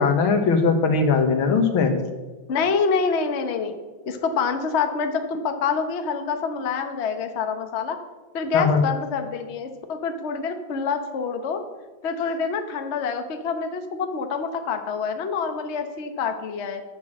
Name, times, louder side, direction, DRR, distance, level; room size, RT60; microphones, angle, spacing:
voice 1, 0.0-2.0 8.5-8.8, left 4 dB, 80° left, 6 dB, 2.0 m, -19 dB
voice 2, 2.5-3.7 4.1-8.0 8.3-11.6 12.0-16.8, left 5 dB, 45° left, 6 dB, 0.9 m, -26 dB
10.5 x 6.2 x 7.4 m, 1.2 s
omnidirectional pair, 2.2 m